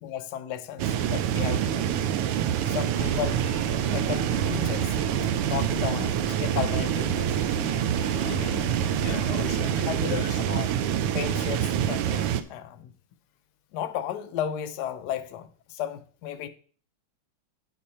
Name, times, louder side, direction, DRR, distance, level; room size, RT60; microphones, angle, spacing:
voice 1, 0.0-1.9 2.7-3.5 3.9-4.9 5.5-7.4 9.4-10.9 11.1-12.9 13.7-16.5, left 10 dB, 70° left, 1.0 m, -34 dB
sound 1, 0.8-12.4, right 10 dB, 90° right, 1.5 m, -26 dB
sound 2, 2.9-9.8, right 3 dB, 70° right, 2.8 m, -37 dB
voice 2, 5.6-5.9 8.0-8.7 9.0-10.4, left 10 dB, 90° left, 1.6 m, -40 dB
8.7 x 5.1 x 4.1 m
omnidirectional pair, 2.4 m